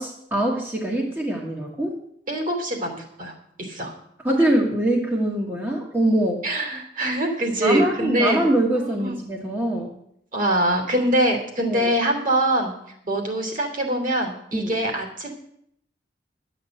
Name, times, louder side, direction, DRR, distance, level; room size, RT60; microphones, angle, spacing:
voice 1, 0.0-2.0 4.2-6.4 7.6-9.9 11.6-11.9 14.5-14.7, right 1 dB, 10° right, 0 dB, 1.4 m, -23 dB
voice 2, 2.3-3.3 3.6-3.9 6.4-8.4 8.7-9.2 10.3-12.7 13.0-15.3, right 1 dB, 50° right, 3 dB, 2.9 m, -24 dB
11.5 x 8.0 x 7.7 m, 0.72 s
head